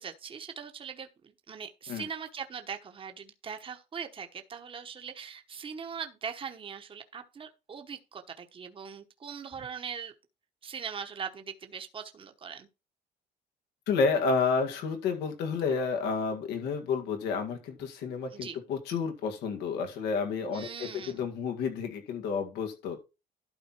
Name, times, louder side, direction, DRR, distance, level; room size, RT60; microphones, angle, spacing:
voice 1, 0.0-10.1 10.6-12.7 18.3-18.6 20.5-21.2, right 6 dB, 30° right, 1.1 m, -41 dB
voice 2, 13.9-23.0, left 5 dB, 85° left, 2.0 m, -30 dB
12.0 x 4.1 x 4.5 m
cardioid pair, 110°, 17 cm